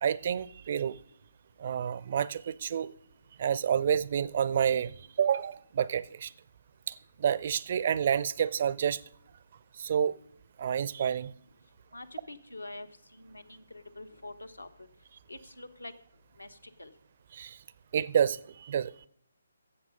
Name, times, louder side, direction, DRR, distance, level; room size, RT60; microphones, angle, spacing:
voice 1, 0.0-1.0 1.6-2.9 3.4-6.3 6.9-9.0 9.8-10.2 10.6-11.3 17.3-17.6 17.9-18.9, right 8 dB, 40° right, 0.4 m, -29 dB
voice 2, 11.9-14.9 15.3-15.9 16.3-17.0, left 2 dB, 75° left, 1.1 m, -46 dB
15.5 x 7.1 x 5.4 m
figure-of-eight pair, 140°, 0 cm